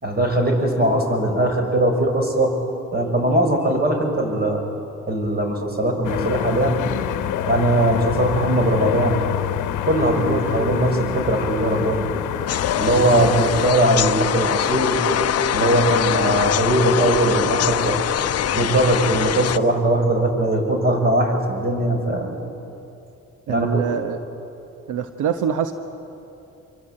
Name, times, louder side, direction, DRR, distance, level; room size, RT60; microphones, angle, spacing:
voice 1, 0.0-2.5 2.9-4.6 5.1-6.8 7.5-9.2 9.8-12.0 12.8-15.0 15.5-18.0 18.5-22.3 23.5-23.8, right 1 dB, 30° right, 3 dB, 6.3 m, -20 dB
sound 1, 6.0-13.7, left 11 dB, 85° left, 1.0 m, -26 dB
sound 2, 12.5-19.6, left 10 dB, 55° left, 0.7 m, -23 dB
voice 2, 23.5-24.2 24.9-25.7, right 8 dB, 85° right, 8 dB, 1.2 m, -24 dB
26.5 x 23.5 x 8.7 m, 2.8 s
cardioid pair, 90°, 30 cm